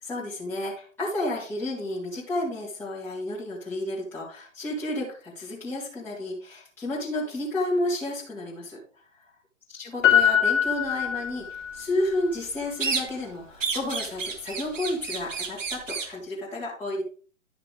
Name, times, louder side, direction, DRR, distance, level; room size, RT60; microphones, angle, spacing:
voice 1, 0.0-8.8 9.7-17.0, left 1 dB, 5° left, -9 dB, 2.2 m, -31 dB
Piano, 10.0-11.8 12.1-12.2, left 9 dB, 25° left, 2.4 m, -22 dB
sound 1, 12.8-13.3 13.6-16.2, right 5 dB, 70° right, 1.6 m, -31 dB
11.0 x 5.9 x 3.5 m, 0.40 s
figure-of-eight pair, 125°, 39 cm